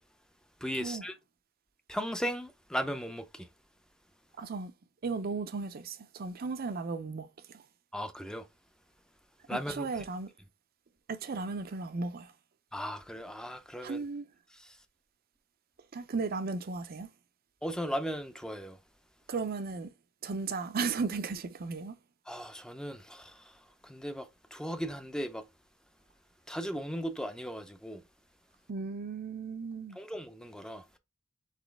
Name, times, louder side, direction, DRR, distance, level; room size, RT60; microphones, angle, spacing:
voice 1, 0.6-1.1 1.9-3.5 7.9-8.5 9.5-9.9 12.7-14.0 17.6-18.8 22.3-23.3 23.8-25.4 26.5-28.0 30.0-31.0, equal, 5° left, 0.5 m, -37 dB
voice 2, 4.4-4.7 5.0-7.6 9.5-10.3 11.1-12.3 13.8-14.3 15.9-17.1 19.3-19.9 20.2-22.0 28.7-30.0, right 4 dB, 50° right, 0.5 m, -35 dB
4.1 x 3.9 x 3.3 m
head